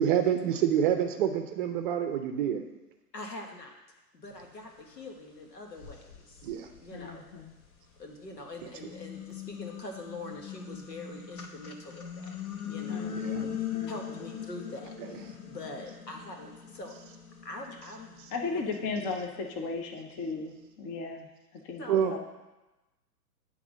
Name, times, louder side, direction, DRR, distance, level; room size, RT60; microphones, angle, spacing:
voice 1, 0.0-2.6 6.4-6.7 13.2-13.5 21.9-22.1, right 9 dB, 35° right, 6 dB, 0.6 m, -27 dB
voice 2, 3.1-3.7 4.1-6.5 6.8-7.2 8.0-12.3 12.6-13.1 13.4-16.9 17.4-18.3 18.5-18.6 21.8-22.2, left 2 dB, 80° left, 2 dB, 1.6 m, -44 dB
sound 1, 5.0-5.1 5.7-8.0 8.6-19.9, left 8 dB, 60° left, 1.1 m, -41 dB
voice 3, 6.9-7.5 12.9-14.2 18.3-22.2, left 4 dB, 20° left, 3 dB, 0.5 m, -37 dB
9.0 x 3.6 x 6.2 m, 1.1 s
figure-of-eight pair, 115°, 48 cm